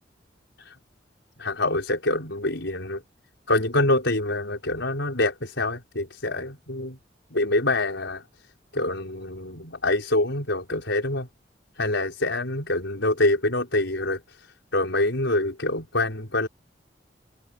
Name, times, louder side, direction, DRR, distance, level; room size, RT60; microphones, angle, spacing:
voice 1, 1.4-3.0 3.5-7.0 7.3-8.2 8.7-11.3 11.8-14.2 14.7-16.5, left 2 dB, 85° left, 5.1 m, -25 dB
head